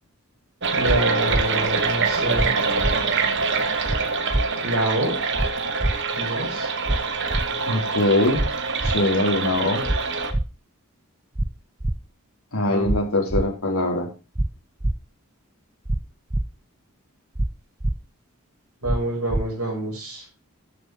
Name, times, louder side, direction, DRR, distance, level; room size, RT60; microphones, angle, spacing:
sound 1, 0.6-10.3, right 4 dB, 55° right, 1.4 m, -25 dB
voice 1, 0.7-2.5 4.6-5.1 6.1-6.7 12.7-13.1 18.8-20.3, right 1 dB, 85° right, -7 dB, 5.7 m, -27 dB
sound 2, 0.9-1.0 1.3-1.4 2.4-2.5 2.8-2.9 3.9-4.0 4.3-4.4 5.4-5.5 5.8-5.9 6.9-7.0 7.3-7.5 8.4-8.5 8.8-9.0 9.9-10.0 10.3-10.4 11.4-11.5 11.8-12.0 12.9-13.0 13.3-13.4 14.4-14.5 14.8-14.9 15.9-16.0 16.3-16.4 17.4-17.5 17.8-17.9 18.9-19.0 19.3-19.4, right 1 dB, 15° right, 0.5 m, -23 dB
voice 2, 7.6-8.5 8.8-9.8 12.5-14.1, left 2 dB, 80° left, 1 dB, 3.2 m, -22 dB
12.5 x 7.1 x 4.7 m, 0.31 s
head